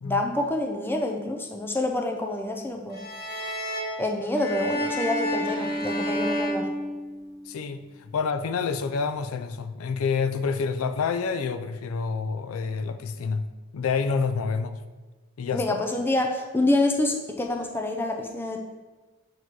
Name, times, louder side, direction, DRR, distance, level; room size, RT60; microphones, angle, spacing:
voice 1, 0.0-3.0 4.0-6.7 15.5-18.6, left 2 dB, 10° left, 3 dB, 0.4 m, -27 dB
sound 1, 2.9-7.5, equal, 45° left, 0.9 m, -30 dB
voice 2, 7.5-13.4 13.7-14.8 15.4-15.8, left 5 dB, 80° left, 10 dB, 0.4 m, -28 dB
7.9 x 3.0 x 4.6 m, 1.2 s
head